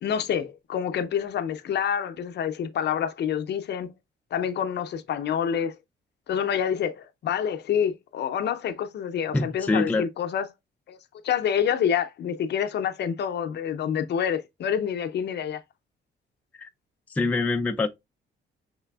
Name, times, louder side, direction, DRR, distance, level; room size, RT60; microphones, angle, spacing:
voice 1, 0.0-3.9 4.3-5.8 6.3-10.5 10.9-11.0 11.2-15.6, left 8 dB, 60° left, 0.5 m, -27 dB
voice 2, 9.3-10.0 16.5-16.7 17.1-17.9, left 3 dB, 10° left, 0.3 m, -25 dB
5.6 x 3.3 x 2.2 m
cardioid pair, 90°, 20 cm